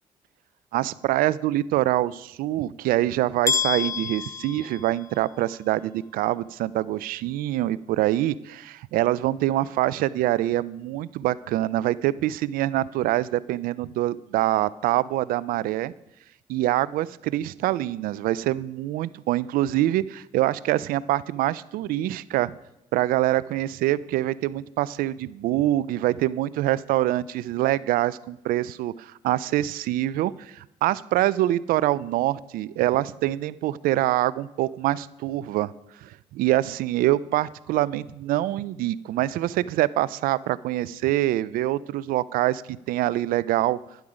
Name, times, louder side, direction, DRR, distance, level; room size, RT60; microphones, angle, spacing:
voice 1, 0.7-15.9 16.5-22.5 22.9-35.7 36.0-42.6 42.9-43.8, right 15 dB, 80° right, 20 dB, 0.4 m, -25 dB
sound 1, 3.5-5.4, left 5 dB, 20° left, 0.6 m, -28 dB
11.5 x 10.0 x 4.9 m, 0.88 s
supercardioid pair, 55°, 15 cm